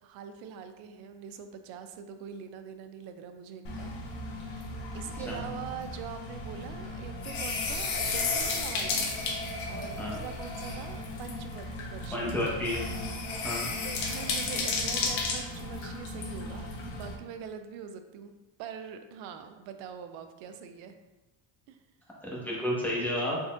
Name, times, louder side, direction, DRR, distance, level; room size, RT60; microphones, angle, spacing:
voice 1, 0.0-3.9 4.4-4.6 4.9-9.1 9.7-12.3 13.8-18.3 18.6-21.0 21.7-21.8, right 8 dB, 75° right, 8 dB, 0.6 m, -43 dB
sound 1, 3.6-17.1, left 3 dB, 80° left, 1.0 m, -34 dB
voice 2, 12.1-12.9 13.4-13.7 22.2-23.4, left 1 dB, 5° left, -5 dB, 1.1 m, -31 dB
4.1 x 3.5 x 2.4 m, 1.1 s
cardioid pair, 115°, 46 cm